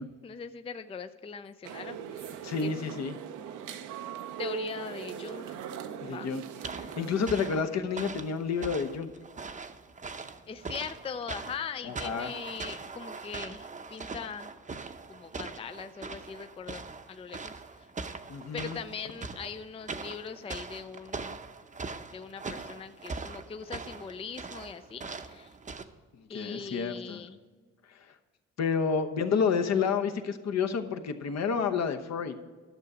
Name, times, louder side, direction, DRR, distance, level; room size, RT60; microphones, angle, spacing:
voice 1, 0.2-2.7 4.4-5.6 6.0-6.3 10.5-14.5 15.1-16.8 17.1-17.9 18.5-21.4 22.1-25.5 26.3-27.4, left 6 dB, 20° left, 10 dB, 0.4 m, -41 dB
sound 1, 1.6-7.5, right 7 dB, 85° right, 0.8 m, -40 dB
voice 2, 2.4-3.1 6.0-6.4 7.0-9.1 11.8-12.3 18.3-18.8 26.1-27.2 27.9-28.0 28.6-32.3, left 6 dB, 60° left, 7 dB, 1.0 m, -30 dB
sound 2, 6.6-25.8, right 4 dB, 25° right, 0.7 m, -41 dB
11.5 x 6.7 x 4.9 m, 1.5 s
cardioid pair, 90°, 30 cm